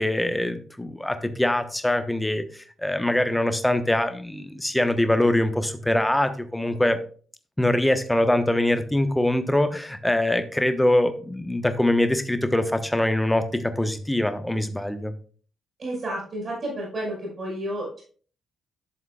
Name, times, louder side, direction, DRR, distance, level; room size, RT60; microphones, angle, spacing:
voice 1, 0.0-7.0 7.6-15.1, left 1 dB, 10° left, 10 dB, 1.0 m, -23 dB
voice 2, 15.8-18.0, right 1 dB, 45° right, -4 dB, 4.6 m, -31 dB
11.5 x 7.2 x 2.3 m, 0.42 s
figure-of-eight pair, 40°, 0 cm